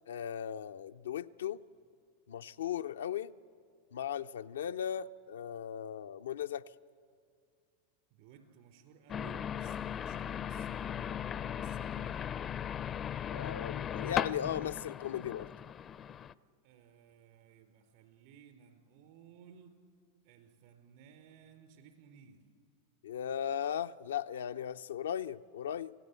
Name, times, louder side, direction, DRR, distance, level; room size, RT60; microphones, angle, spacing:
voice 1, 0.1-1.6 2.3-3.3 3.9-6.7 13.3-15.5 23.0-25.9, left 9 dB, 80° left, 0.5 m, -37 dB
voice 2, 8.1-12.3 16.6-19.7 20.2-22.4, right 7 dB, 60° right, 4.0 m, -58 dB
sound 1, 9.1-16.3, left 9 dB, 30° left, 0.5 m, -38 dB
27.5 x 16.0 x 8.2 m
hypercardioid pair, 100°, 0 cm